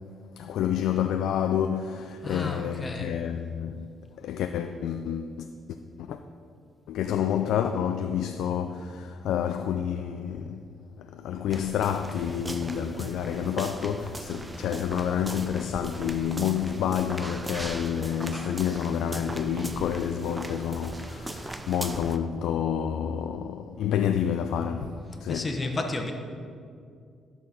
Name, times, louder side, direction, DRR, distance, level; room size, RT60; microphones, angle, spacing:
voice 1, 0.4-3.9 4.2-5.5 6.0-6.2 6.9-10.6 11.0-25.6, left 9 dB, 80° left, 0.4 m, -29 dB
voice 2, 2.2-3.1 25.3-26.1, left 2 dB, 30° left, 1.2 m, -32 dB
sound 1, 11.5-22.2, right 2 dB, 15° right, 0.6 m, -38 dB
12.5 x 4.6 x 5.5 m
cardioid pair, 90°, 0 cm